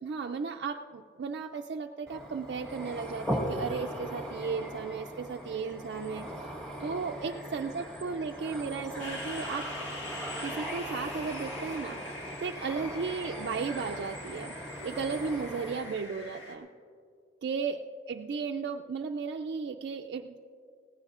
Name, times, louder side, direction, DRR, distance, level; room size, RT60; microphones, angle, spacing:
voice 1, 0.0-6.3 6.8-9.7 10.4-14.6 14.8-16.7 17.4-20.4, right 5 dB, 60° right, 2 dB, 0.3 m, -35 dB
sound 1, 2.1-16.0, equal, 5° left, 1.5 m, -39 dB
sound 2, 9.0-16.6, left 2 dB, 75° left, 1.6 m, -43 dB
20.5 x 16.0 x 2.4 m, 2.3 s
head